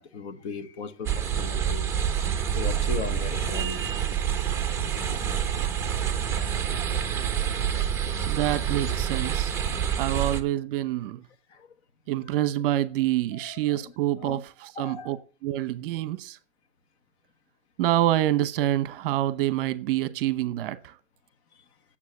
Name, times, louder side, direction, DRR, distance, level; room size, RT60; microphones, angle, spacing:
voice 1, 0.0-1.9 2.5-4.0 4.3-4.4 6.1-6.3 11.5-11.7 13.3-13.9 14.2-14.4 14.8-15.2, left 5 dB, 55° left, 1.4 m, -38 dB
sound 1, 1.1-10.4, right 9 dB, 5° right, 0.7 m, -27 dB
voice 2, 8.3-9.5 10.0-11.2 12.1-15.2 15.4-16.4 17.8-20.9, right 13 dB, 45° right, 1.0 m, -26 dB
8.8 x 7.4 x 8.6 m
hypercardioid pair, 150°, 40 cm